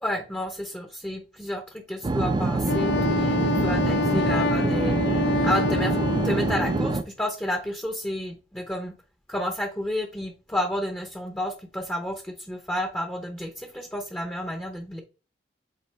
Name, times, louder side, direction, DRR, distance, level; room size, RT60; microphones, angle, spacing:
voice 1, 0.0-5.0 5.4-6.0 6.2-8.9 9.3-15.0, equal, 10° left, 4 dB, 0.7 m, -31 dB
sound 1, 2.0-7.0, right 2 dB, 25° right, 0.4 m, -25 dB
Wind instrument woodwind instrument, 2.7-7.0, left 3 dB, 65° left, 0.4 m, -27 dB
8.2 x 3.7 x 3.3 m, 0.35 s
head